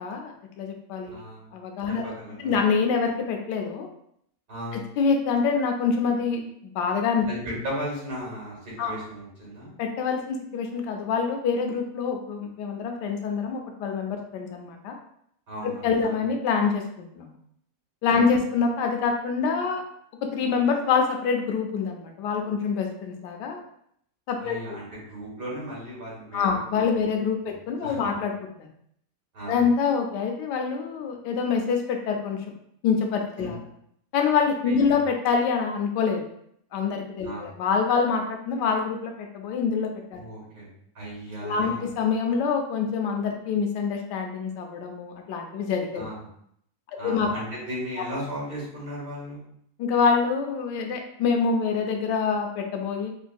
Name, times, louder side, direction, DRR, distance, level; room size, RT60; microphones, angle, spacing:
voice 1, 0.0-1.2 1.5-2.0 2.4-3.9 4.7-6.4 6.7-7.3 8.8-8.9 9.8-14.9 15.6-17.3 18.0-19.8 20.2-23.6 24.3-24.6 26.3-28.7 29.5-32.4 32.8-33.6 34.1-36.2 36.7-40.2 41.4-46.0 47.0-47.3 49.8-53.1, left 5 dB, 85° left, 3 dB, 1.2 m, -26 dB
voice 2, 1.1-1.4 2.0-2.6 4.5-4.8 7.3-9.7 15.5-16.2 18.1-18.2 24.4-26.8 27.8-28.1 29.3-29.6 33.4-33.6 34.7-35.0 37.2-37.5 40.1-40.7 40.9-41.9 45.9-46.2 47.0-49.4, equal, 80° right, -6 dB, 2.3 m, -36 dB
4.5 x 2.5 x 2.3 m, 0.70 s
omnidirectional pair, 1.8 m